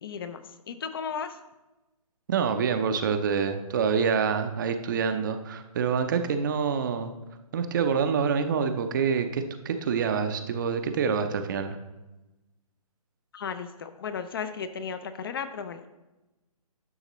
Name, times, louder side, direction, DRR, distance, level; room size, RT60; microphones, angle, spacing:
voice 1, 0.0-1.4 13.3-15.9, left 6 dB, 40° left, 10 dB, 0.5 m, -35 dB
voice 2, 2.3-7.1 7.5-11.8, right 6 dB, 30° right, 8 dB, 0.6 m, -26 dB
11.0 x 6.4 x 3.1 m, 1.0 s
figure-of-eight pair, 145°, 19 cm